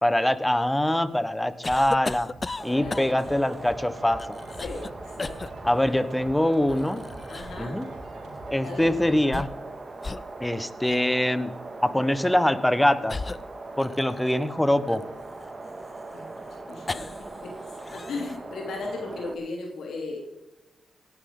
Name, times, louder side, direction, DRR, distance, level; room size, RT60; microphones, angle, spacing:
voice 1, 0.0-2.3 2.6-4.4 5.6-7.0 7.6-7.9 8.5-9.5 10.4-11.5 11.8-13.2 13.8-15.0, left 1 dB, 10° left, 14 dB, 1.2 m, -23 dB
sound 1, 1.6-3.4 4.2-4.9 5.2-5.5 6.7-7.7 9.1-9.7 10.0-10.3 10.9-11.0 12.1-12.3 13.1-14.3 14.9-17.4 17.7-18.4, left 3 dB, 35° left, 0.5 m, -36 dB
Drum kit, 2.2-10.0, right 2 dB, 85° right, 4.4 m, -47 dB
sound 2, 2.6-19.4, right 2 dB, 30° right, 2.2 m, -40 dB
voice 2, 2.7-3.3 4.6-4.8 5.2-5.3 7.3-7.8 8.6-8.9 16.1-16.2 16.7-17.0 17.4-17.5 17.9-20.2, left 3 dB, 80° left, 0 dB, 3.2 m, -36 dB
17.5 x 12.0 x 3.9 m, 0.99 s
cardioid pair, 65°, 0 cm